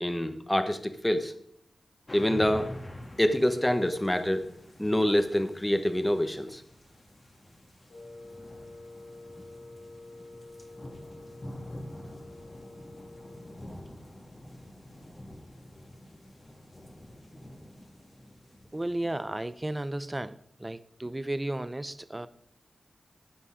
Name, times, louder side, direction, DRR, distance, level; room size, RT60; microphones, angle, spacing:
voice 1, 0.0-1.3 2.1-2.7 3.2-4.4 4.8-6.6, left 1 dB, 10° left, 8 dB, 1.2 m, -26 dB
sound 1, 2.1-19.9, left 1 dB, 25° left, 1.7 m, -47 dB
Wind instrument woodwind instrument, 7.9-13.7, left 2 dB, 80° left, 3.9 m, -48 dB
voice 2, 18.7-22.3, right 1 dB, 20° right, 14 dB, 0.6 m, -34 dB
15.0 x 5.4 x 5.0 m, 0.66 s
cardioid pair, 65°, 0 cm